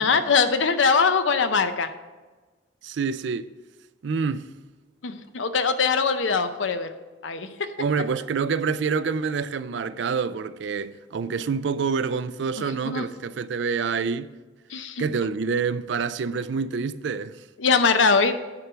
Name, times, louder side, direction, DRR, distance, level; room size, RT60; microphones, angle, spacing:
voice 1, 0.0-1.9 5.0-6.9 7.2-7.7 12.9-13.0 14.7-15.0 17.6-18.3, left 5 dB, 75° left, 0.7 m, -22 dB
voice 2, 2.8-3.5 4.0-4.5 7.8-14.3 15.0-17.4, right 5 dB, 65° right, 0.4 m, -27 dB
9.9 x 4.6 x 6.7 m
head